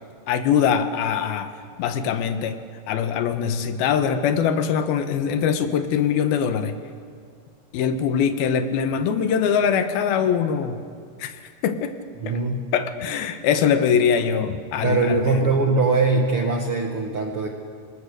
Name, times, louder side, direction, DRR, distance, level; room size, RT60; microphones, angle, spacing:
voice 1, 0.3-1.5 1.8-2.6 2.9-6.8 7.7-10.8 11.2-11.9 12.3-12.4 12.7-15.3, left 7 dB, 80° left, 9 dB, 2.9 m, -22 dB
voice 2, 12.2-12.6 14.8-17.5, right 3 dB, 55° right, 2 dB, 1.5 m, -21 dB
26.0 x 20.0 x 6.7 m, 2.1 s
omnidirectional pair, 4.3 m